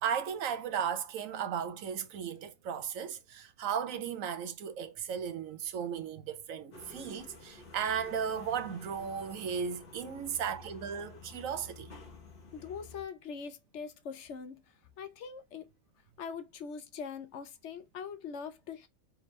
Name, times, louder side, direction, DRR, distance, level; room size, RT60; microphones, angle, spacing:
voice 1, 0.0-11.9, right 7 dB, 90° right, 1.1 m, -35 dB
sound 1, 6.7-13.0, left 3 dB, 45° left, 1.4 m, -51 dB
voice 2, 12.5-15.7 16.2-18.9, left 6 dB, 65° left, 1.0 m, -42 dB
3.8 x 3.5 x 3.1 m
omnidirectional pair, 1.3 m